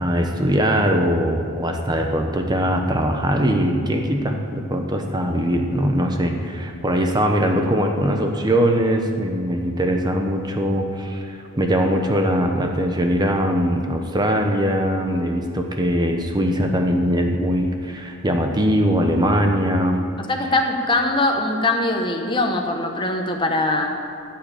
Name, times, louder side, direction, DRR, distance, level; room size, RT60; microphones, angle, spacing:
voice 1, 0.0-20.0, equal, 20° right, 3 dB, 0.9 m, -21 dB
voice 2, 20.3-23.9, left 2 dB, 20° left, 2 dB, 1.0 m, -21 dB
14.0 x 5.8 x 8.9 m, 2.3 s
head